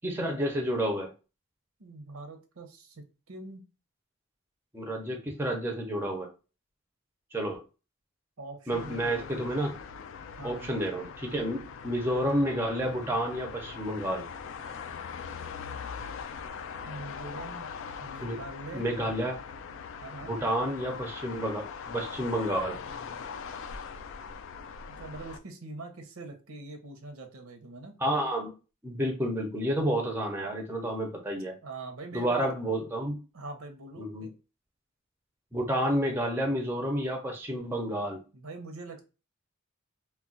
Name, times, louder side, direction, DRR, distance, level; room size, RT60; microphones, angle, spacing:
voice 1, 0.0-1.1 4.7-6.3 7.3-7.6 8.7-9.8 10.4-14.3 18.2-18.4 18.7-19.4 20.2-22.8 28.0-28.5 28.8-31.5 32.1-33.2 34.0-34.3 35.5-38.2, right 1 dB, 10° right, 2 dB, 0.5 m, -30 dB
voice 2, 1.8-3.6 8.4-9.3 10.4-10.7 16.8-17.7 18.0-18.9 20.0-20.3 25.0-28.0 31.6-32.5 33.3-34.3 38.3-39.1, right 2 dB, 80° right, 5 dB, 0.7 m, -43 dB
sound 1, 8.7-25.4, left 6 dB, 65° left, 0.3 m, -41 dB
2.3 x 2.2 x 3.7 m, 0.31 s
head